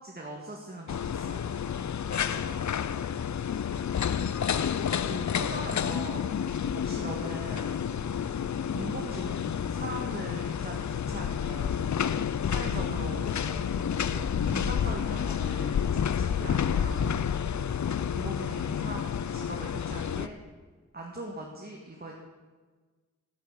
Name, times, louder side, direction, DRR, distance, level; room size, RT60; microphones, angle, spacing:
voice 1, 0.0-1.4 2.1-2.7 4.2-7.7 8.7-11.9 12.4-13.8 14.1-17.3 18.1-20.4 20.9-22.1, right 2 dB, 30° right, 0 dB, 1.7 m, -41 dB
sound 1, 0.9-20.3, left 8 dB, 65° left, 0.5 m, -30 dB
9.2 x 9.0 x 8.4 m, 1.4 s
cardioid pair, 55°, 31 cm